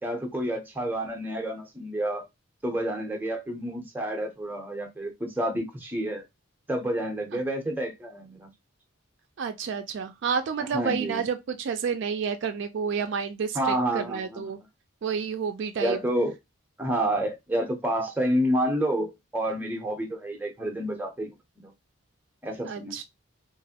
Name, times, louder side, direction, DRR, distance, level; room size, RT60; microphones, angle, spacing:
voice 1, 0.0-2.2 2.6-6.2 6.7-8.5 10.7-11.2 13.5-14.4 15.8-16.3 16.8-21.3 21.6-21.7 22.4-23.0, right 1 dB, 10° right, 0.6 m, -29 dB
voice 2, 9.4-14.6 15.0-16.0 22.6-23.0, right 6 dB, 55° right, 0.3 m, -30 dB
3.0 x 2.5 x 2.7 m
head